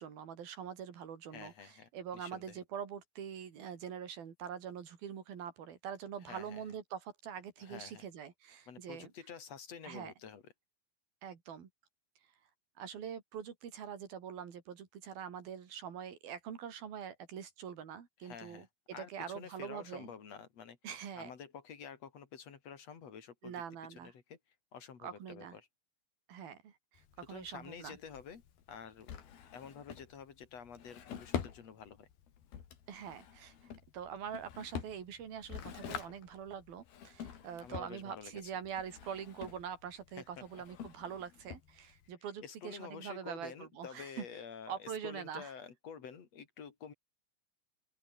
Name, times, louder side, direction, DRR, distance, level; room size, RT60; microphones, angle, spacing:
voice 1, 0.0-9.1 9.8-10.1 11.2-11.7 12.8-18.7 19.0-20.1 20.8-21.3 23.4-24.1 25.0-25.6 26.3-28.0 32.9-44.3 44.7-45.5, right 8 dB, 75° right, 4.7 m, -44 dB
voice 2, 1.3-2.6 6.2-6.6 7.6-8.0 8.7-10.5 18.2-18.7 18.9-20.8 21.2-23.6 24.0-24.4 24.7-25.7 27.3-28.4 28.7-29.2 29.5-32.1 37.6-38.5 40.2-40.6 42.4-46.9, left 7 dB, 45° left, 3.7 m, -49 dB
Drawer open or close, 27.0-42.1, left 8 dB, 80° left, 4.7 m, -47 dB
open air
omnidirectional pair, 4.3 m